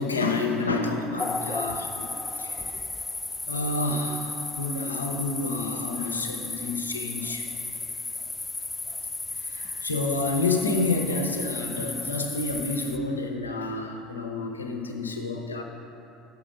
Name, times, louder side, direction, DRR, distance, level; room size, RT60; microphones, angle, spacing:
voice 1, 0.0-2.1 2.4-2.8 3.5-7.5 9.4-15.6, left 3 dB, 85° left, 3 dB, 0.7 m, -29 dB
sound 1, 1.2-13.0, left 3 dB, 15° left, 0.3 m, -34 dB
6.8 x 6.1 x 6.1 m, 2.8 s
figure-of-eight pair, 65°, 0 cm